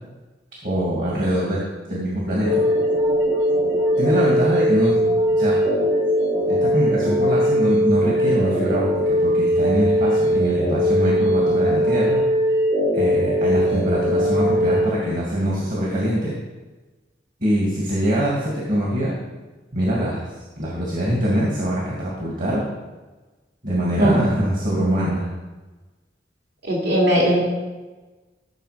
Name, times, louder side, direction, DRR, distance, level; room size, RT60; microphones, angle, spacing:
voice 1, 0.6-1.6 1.9-2.6 4.0-4.9 5.3-5.6 6.5-12.2 12.9-16.4 17.4-19.1 19.7-20.2 20.6-22.6 23.6-25.2, equal, 50° right, -4 dB, 2.6 m, -23 dB
sound 1, 2.4-14.8, equal, 85° right, 4.1 m, -20 dB
voice 2, 26.6-27.4, equal, 65° right, -4 dB, 3.1 m, -18 dB
15.0 x 6.7 x 5.2 m, 1.2 s
head